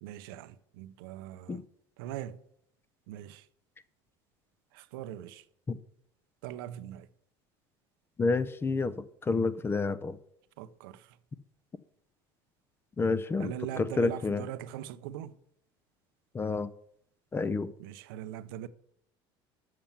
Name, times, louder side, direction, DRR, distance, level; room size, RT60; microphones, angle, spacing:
voice 1, 0.0-1.6 2.0-2.4 3.1-3.4 4.7-5.4 6.4-7.1 10.6-11.1 13.4-15.3 17.8-18.7, right 12 dB, 90° right, 0.6 m, -41 dB
voice 2, 8.2-10.2 13.0-14.5 16.3-16.7 17.3-17.7, left 4 dB, 20° left, 0.6 m, -29 dB
7.4 x 5.8 x 7.1 m
supercardioid pair, 105°, 11 cm